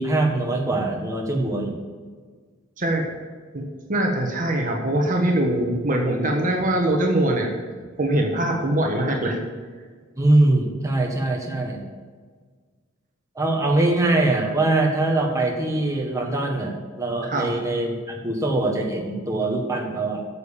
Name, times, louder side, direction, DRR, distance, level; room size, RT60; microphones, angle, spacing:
voice 1, 0.0-1.7 10.2-11.8 13.3-20.3, right 2 dB, 15° right, -1 dB, 1.5 m, -22 dB
voice 2, 2.8-3.1 3.5-7.5 8.0-9.4 17.3-17.5, right 1 dB, 40° right, 1 dB, 1.3 m, -22 dB
9.2 x 7.0 x 7.3 m, 1.5 s
head